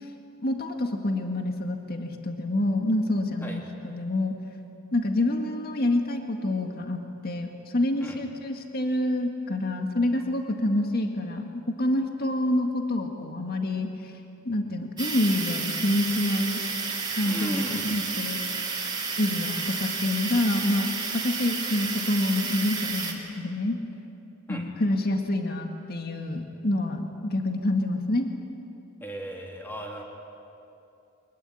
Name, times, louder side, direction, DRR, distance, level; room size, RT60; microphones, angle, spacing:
voice 1, 0.4-4.3 4.9-13.9 14.5-16.6 17.2-18.4 19.2-23.8 24.5-28.3, left 1 dB, 50° left, 4 dB, 1.9 m, -27 dB
sound 1, 15.0-23.1, right 4 dB, 20° right, 2.9 m, -31 dB
voice 2, 17.2-17.9 24.5-24.7 29.0-30.0, equal, 10° left, -1 dB, 3.5 m, -36 dB
23.0 x 21.0 x 10.0 m, 2.7 s
head